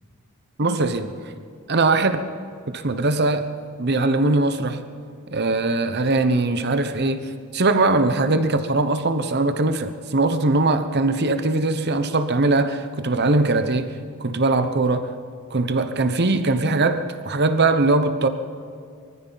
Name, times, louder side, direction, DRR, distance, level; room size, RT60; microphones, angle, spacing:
voice 1, 0.6-1.1 1.7-2.2 2.7-3.5 3.8-4.8 5.3-14.0 14.2-15.1 15.5-18.3, right 2 dB, 45° right, 0.9 m, -21 dB
23.5 x 14.5 x 4.1 m
head